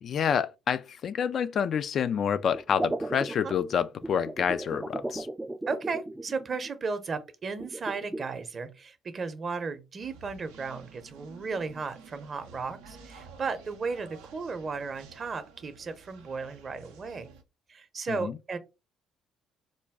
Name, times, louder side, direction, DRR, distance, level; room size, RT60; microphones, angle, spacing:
voice 1, 0.0-5.3 18.1-18.4, left 7 dB, 55° left, 0.3 m, -28 dB
sound 1, 2.5-6.7 7.6-8.2, right 2 dB, 15° right, 0.4 m, -36 dB
voice 2, 5.7-17.3 17.7-18.6, right 4 dB, 40° right, 0.7 m, -35 dB
sound 2, 10.0-17.4, right 5 dB, 80° right, 0.5 m, -51 dB
3.9 x 2.2 x 3.5 m
hypercardioid pair, 50°, 0 cm